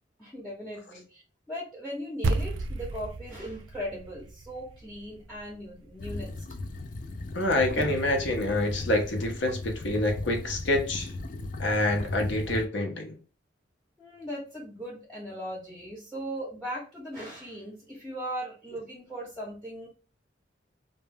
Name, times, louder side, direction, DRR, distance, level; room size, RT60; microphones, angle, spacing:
voice 1, 0.2-1.2 1.5-6.6 7.7-7.8 14.0-19.9, equal, ahead, 0.6 m, -38 dB
sound 1, 2.2-6.8, right 2 dB, 90° right, 0.4 m, -34 dB
sound 2, 6.0-12.7, left 2 dB, 45° left, 0.3 m, -37 dB
voice 2, 7.3-11.1 11.6-13.2, left 1 dB, 75° left, 0.7 m, -27 dB
2.2 x 2.0 x 3.2 m
head